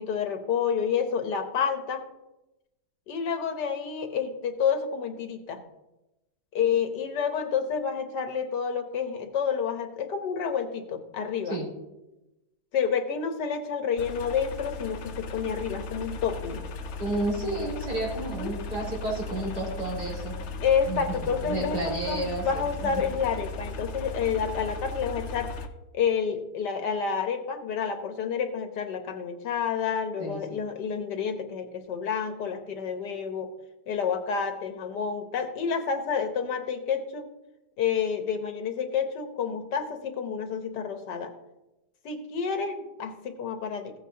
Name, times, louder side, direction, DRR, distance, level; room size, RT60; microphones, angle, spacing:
voice 1, 0.0-2.0 3.1-5.6 6.5-11.6 12.7-16.7 18.2-18.5 20.6-25.5 25.9-33.5 33.9-37.3 37.8-41.3 42.0-43.9, left 6 dB, 85° left, 7 dB, 1.6 m, -29 dB
sound 1, 14.0-25.7, left 3 dB, 55° left, 0.8 m, -37 dB
voice 2, 17.0-20.4 20.9-23.0 30.2-30.6, right 2 dB, 70° right, -5 dB, 4.3 m, -31 dB
16.0 x 8.3 x 2.8 m, 0.97 s
omnidirectional pair, 1.8 m